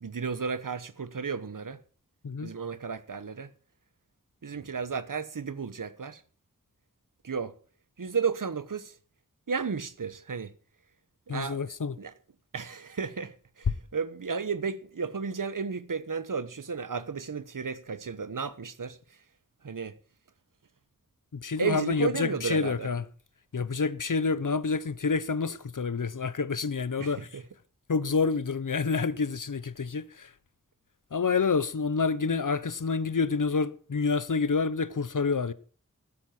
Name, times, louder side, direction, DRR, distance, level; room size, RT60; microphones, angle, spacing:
voice 1, 0.0-1.8 2.4-3.5 4.4-6.2 7.2-7.5 8.0-9.0 9.5-10.5 11.3-11.7 12.0-12.1 12.5-19.0 19.6-20.0 21.6-22.9 27.0-27.4, right 5 dB, 75° right, 1.2 m, -33 dB
voice 2, 11.3-12.0 21.3-23.0 23.5-27.4 27.9-30.3 31.1-35.5, left 4 dB, 70° left, 1.1 m, -28 dB
14.5 x 12.5 x 4.5 m
wide cardioid pair, 40°, 32 cm